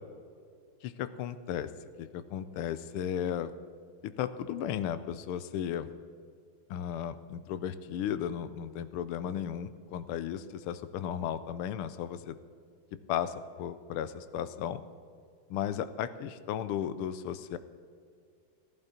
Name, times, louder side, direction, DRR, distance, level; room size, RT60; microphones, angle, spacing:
voice 1, 0.8-1.7 2.0-3.5 4.0-5.9 6.7-12.4 13.1-14.8 15.5-17.6, left 9 dB, 90° left, 13 dB, 1.5 m, -35 dB
15.0 x 11.5 x 4.3 m, 2.3 s
omnidirectional pair, 2.3 m